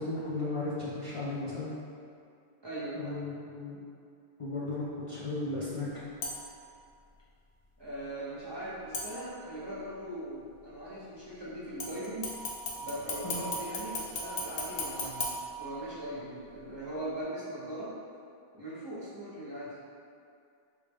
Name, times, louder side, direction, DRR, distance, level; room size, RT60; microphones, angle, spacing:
voice 1, 0.0-1.7 2.9-3.8 4.4-5.9 13.2-13.4, left 2 dB, 40° left, -10 dB, 0.5 m, -35 dB
voice 2, 2.6-3.2 7.8-12.3 12.8-15.3 15.6-18.0 18.5-19.8, right 1 dB, 30° right, -10 dB, 0.6 m, -40 dB
sound 1, 6.2-6.6 8.9-9.6 11.8-16.2 16.6-16.7, left 1 dB, 75° left, 0.9 m, -37 dB
4.5 x 2.0 x 3.4 m, 2.4 s
omnidirectional pair, 1.1 m